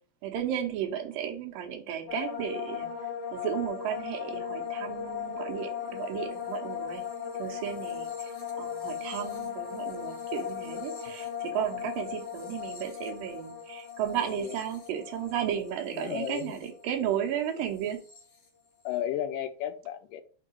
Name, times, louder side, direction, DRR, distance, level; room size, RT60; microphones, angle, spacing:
voice 1, 0.2-2.9 3.3-7.0 7.4-8.1 8.6-18.0, right 9 dB, 80° right, 3 dB, 2.6 m, -34 dB
sound 1, 2.1-17.3 17.6-18.2, left 8 dB, 45° left, 3.2 m, -37 dB
voice 2, 14.2-14.6 15.9-16.6 18.8-20.2, left 10 dB, 80° left, 7 dB, 2.2 m, -34 dB
5.8 x 4.5 x 4.5 m, 0.40 s
omnidirectional pair, 4.0 m